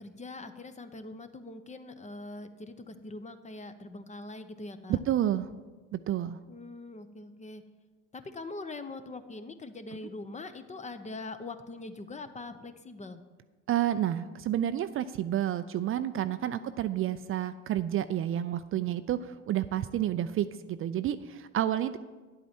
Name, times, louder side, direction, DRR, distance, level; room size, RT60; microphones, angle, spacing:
voice 1, 0.0-5.0 6.5-7.6 8.1-13.2 16.5-16.8, left 2 dB, 20° left, 10 dB, 0.8 m, -42 dB
voice 2, 4.9-5.5 5.9-6.4 13.7-22.0, right 11 dB, 40° right, 12 dB, 0.4 m, -30 dB
10.5 x 8.3 x 4.4 m, 1.3 s
hypercardioid pair, 70°, 33 cm